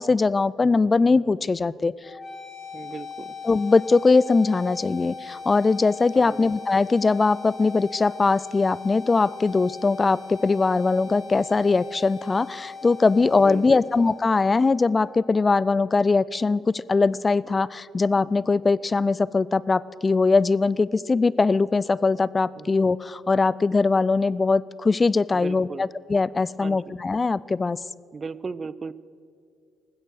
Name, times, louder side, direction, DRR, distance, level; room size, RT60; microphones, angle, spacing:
voice 1, 0.0-1.9 3.4-27.8, left 3 dB, 30° left, 21 dB, 0.3 m, -21 dB
sound 1, 2.0-16.0, left 5 dB, 45° left, 4.1 m, -40 dB
voice 2, 2.7-3.3 6.1-6.5 13.4-13.8 22.5-22.7 25.3-25.9 26.6-26.9 28.1-28.9, right 4 dB, 40° right, 19 dB, 0.5 m, -36 dB
15.0 x 12.5 x 6.4 m, 2.4 s
supercardioid pair, 60°, 0 cm